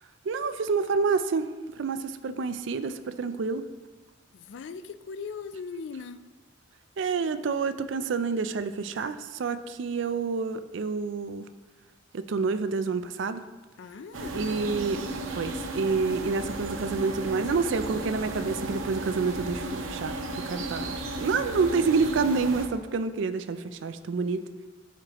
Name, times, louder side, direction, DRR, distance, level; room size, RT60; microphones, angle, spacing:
voice 1, 0.3-1.5 1.8-3.6 7.0-11.4 12.1-13.4 14.3-20.9 21.2-24.4, right 4 dB, 65° right, 12 dB, 0.4 m, -28 dB
voice 2, 4.3-6.2 13.8-14.6, left 5 dB, 65° left, 12 dB, 0.3 m, -39 dB
sound 1, 14.1-22.7, right 1 dB, 90° right, 0.8 m, -34 dB
12.5 x 4.6 x 2.9 m, 1.3 s
head